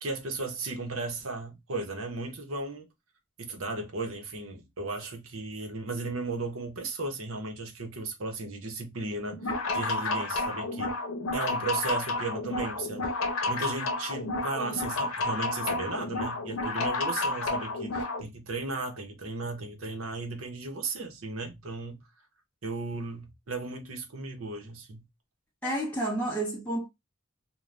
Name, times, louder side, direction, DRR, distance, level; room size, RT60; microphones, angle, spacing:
voice 1, 0.0-2.9 3.4-10.9 11.3-13.1 13.5-22.0 22.6-25.1, right 3 dB, 70° right, 0.8 m, -35 dB
backspace beat, 9.3-18.2, left 2 dB, 75° left, 0.8 m, -31 dB
voice 2, 25.6-26.9, right 1 dB, 5° left, 0.7 m, -30 dB
2.5 x 2.2 x 3.2 m
head